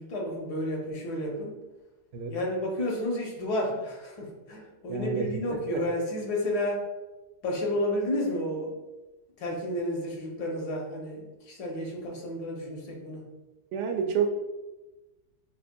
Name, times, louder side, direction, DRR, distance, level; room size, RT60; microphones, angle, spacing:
voice 1, 0.0-1.6 2.3-6.9 7.4-8.8 9.4-13.2, left 1 dB, 75° left, 0 dB, 1.4 m, -31 dB
voice 2, 4.9-5.3 13.7-14.3, right 6 dB, 90° right, 4 dB, 1.2 m, -28 dB
5.5 x 2.5 x 2.2 m, 1.1 s
omnidirectional pair, 1.7 m